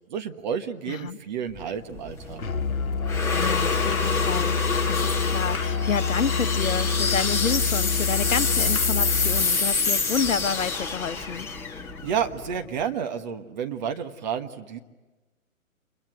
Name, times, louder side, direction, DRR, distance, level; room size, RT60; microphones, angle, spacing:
voice 1, 0.1-2.4 12.0-14.8, right 7 dB, 35° right, 1.4 m, -30 dB
voice 2, 0.9-1.2 3.3-11.5, left 6 dB, 70° left, 1.2 m, -29 dB
sound 1, 1.6-12.8, left 4 dB, 5° left, 1.7 m, -27 dB
Musical instrument, 2.4-9.5, left 5 dB, 85° left, 1.2 m, -27 dB
27.0 x 22.5 x 9.2 m
figure-of-eight pair, 140°, 41 cm